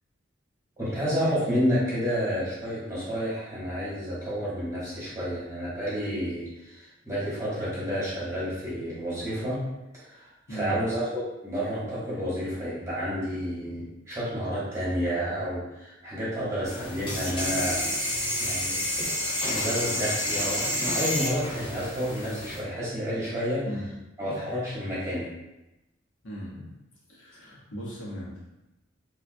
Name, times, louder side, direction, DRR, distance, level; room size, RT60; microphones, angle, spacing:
voice 1, 0.8-9.6 9.9-17.9 18.4-18.8 19.4-23.7 24.2-25.3, equal, 15° right, -9 dB, 0.9 m, -30 dB
voice 2, 10.5-10.8 23.6-23.9 26.2-26.6 27.1-28.3, equal, 75° left, -5 dB, 0.9 m, -37 dB
sound 1, 16.7-22.6, left 1 dB, 25° left, 0.7 m, -29 dB
3.6 x 2.3 x 2.5 m, 0.97 s
head